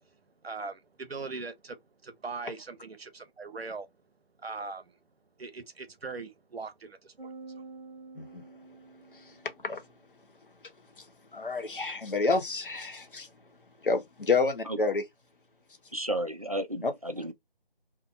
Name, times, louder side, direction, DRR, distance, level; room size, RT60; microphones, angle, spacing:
voice 1, 0.4-1.8 2.0-3.9 4.4-4.9 5.4-7.6, right 4 dB, 90° right, 0.7 m, -40 dB
sound 1, 7.2-9.7, right 3 dB, 55° right, 0.9 m, -48 dB
voice 2, 11.3-13.3 13.8-15.0 16.8-16.9, left 3 dB, 60° left, 0.8 m, -28 dB
voice 3, 15.9-17.3, right 1 dB, 40° right, 0.4 m, -33 dB
2.7 x 2.0 x 2.5 m
figure-of-eight pair, 165°, 30 cm